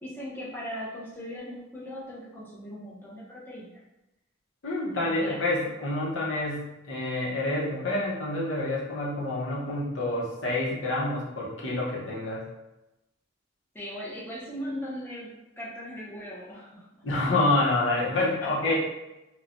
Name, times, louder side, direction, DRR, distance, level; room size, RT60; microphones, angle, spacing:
voice 1, 0.0-3.8 4.9-5.4 13.7-16.9 17.2-17.6 18.4-18.8, equal, 10° left, -7 dB, 0.6 m, -39 dB
voice 2, 4.6-12.4 17.0-18.8, left 2 dB, 70° left, -5 dB, 0.7 m, -28 dB
3.0 x 2.1 x 2.5 m, 0.96 s
head